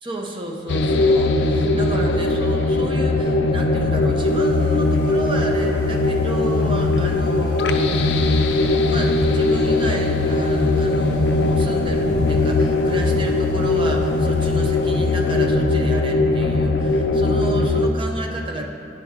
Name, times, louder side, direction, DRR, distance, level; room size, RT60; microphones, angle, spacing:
voice 1, 0.0-18.7, right 1 dB, 30° right, 1 dB, 0.6 m, -31 dB
sound 1, 0.7-17.9, left 2 dB, 65° left, 0.4 m, -19 dB
sound 2, 4.2-15.4, equal, 5° left, 1.7 m, -38 dB
10.5 x 4.8 x 3.6 m, 2.7 s
head